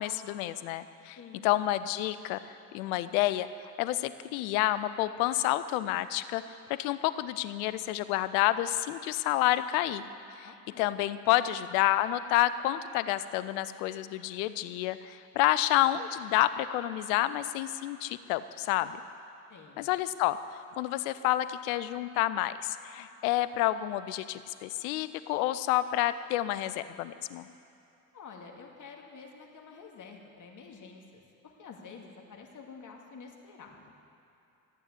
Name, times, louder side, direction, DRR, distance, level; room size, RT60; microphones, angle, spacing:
voice 1, 0.0-1.2 1.4-2.4 2.7-3.5 3.8-6.4 6.7-10.0 10.4-10.5 10.8-19.0 19.8-20.4 20.8-27.5, left 14 dB, 70° left, 13 dB, 0.7 m, -29 dB
voice 2, 1.2-1.5 10.4-10.9 19.5-19.8 28.1-33.9, left 5 dB, 45° left, 1 dB, 2.3 m, -49 dB
14.5 x 9.0 x 8.2 m, 2.7 s
hypercardioid pair, 65°, 43 cm